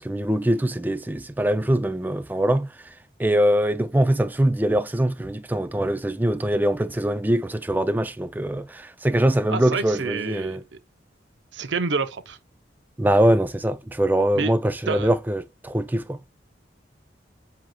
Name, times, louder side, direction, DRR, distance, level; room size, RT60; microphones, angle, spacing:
voice 1, 0.0-2.7 3.2-10.6 13.0-16.2, right 1 dB, 10° right, 0.3 m, -23 dB
voice 2, 9.5-10.6 11.5-12.4 14.3-14.5 14.9-15.1, right 4 dB, 85° right, 0.7 m, -28 dB
7.6 x 2.8 x 2.2 m
head